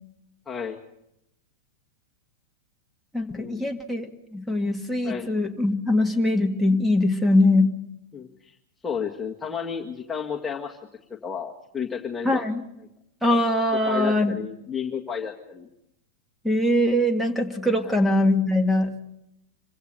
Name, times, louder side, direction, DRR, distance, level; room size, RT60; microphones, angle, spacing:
voice 1, 0.5-0.8 3.4-3.7 5.0-5.3 8.1-8.5 8.8-10.8 11.1-12.4 13.7-15.7 17.8-18.0, left 7 dB, 10° left, -1 dB, 1.7 m, -32 dB
voice 2, 3.1-7.7 12.2-12.6 13.2-14.3 16.4-18.9, left 1 dB, 5° right, 7 dB, 2.2 m, -22 dB
26.5 x 16.0 x 6.8 m, 0.82 s
hypercardioid pair, 105°, 0 cm